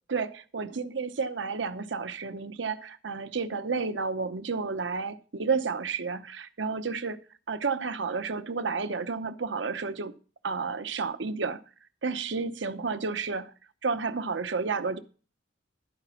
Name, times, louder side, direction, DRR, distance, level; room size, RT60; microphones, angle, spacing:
voice 1, 0.1-7.2 7.5-10.1 10.4-11.6 12.0-13.5 13.8-15.0, right 4 dB, 75° right, 0.8 m, -31 dB
12.0 x 5.0 x 5.6 m
head